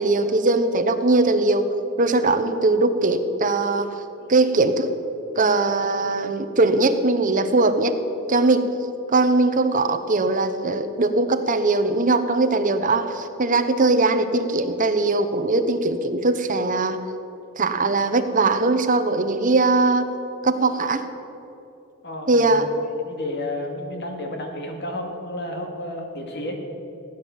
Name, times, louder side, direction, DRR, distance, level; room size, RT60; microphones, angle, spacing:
voice 1, 0.0-1.7 2.0-3.9 4.3-4.9 5.4-7.9 8.3-8.6 9.1-17.0 17.6-20.1 20.4-21.0 22.3-23.0, right 2 dB, 40° right, 8 dB, 1.0 m, -20 dB
voice 2, 22.0-22.5 23.0-26.5, left 1 dB, 55° left, 2 dB, 2.3 m, -32 dB
17.0 x 9.3 x 7.2 m, 2.9 s
head